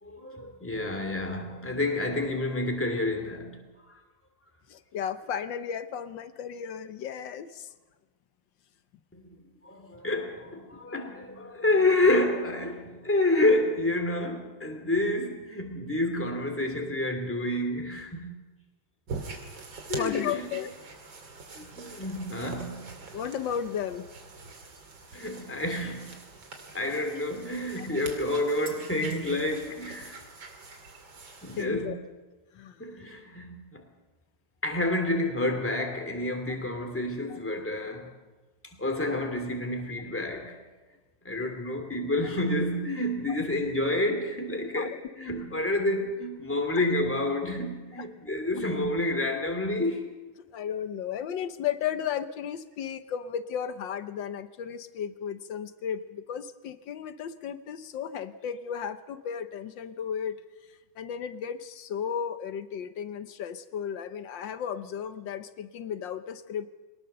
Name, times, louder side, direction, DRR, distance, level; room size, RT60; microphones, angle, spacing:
voice 1, 0.0-4.0 9.1-9.2 9.6-18.4 19.9-20.5 21.5-22.9 25.1-26.1 26.7-30.1 31.4-31.9 32.8-33.9 34.6-38.1 38.6-40.6 41.2-50.1, left 2 dB, 5° left, 4 dB, 2.5 m, -29 dB
voice 2, 4.7-7.7 19.9-20.7 23.1-24.0 27.8-27.9 31.6-32.0 32.5-32.8 43.3-43.4 44.7-44.9 46.7-46.9 50.5-60.4 60.7-66.7, left 8 dB, 65° left, 12 dB, 1.4 m, -34 dB
sound 1, 19.1-31.6, right 4 dB, 65° right, 3.3 m, -44 dB
22.5 x 20.0 x 6.7 m, 1.2 s
omnidirectional pair, 2.3 m